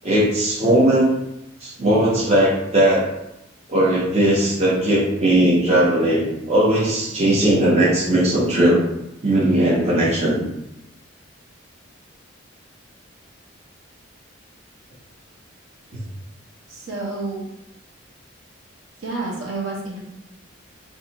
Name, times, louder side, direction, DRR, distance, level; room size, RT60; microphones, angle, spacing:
voice 1, 0.0-1.1 1.6-3.1 3.7-8.8 9.2-10.4, right 1 dB, 30° right, -5 dB, 0.7 m, -18 dB
voice 2, 16.7-17.5 19.0-20.1, right 3 dB, 70° right, -2 dB, 0.8 m, -29 dB
2.6 x 2.3 x 3.9 m, 0.86 s
head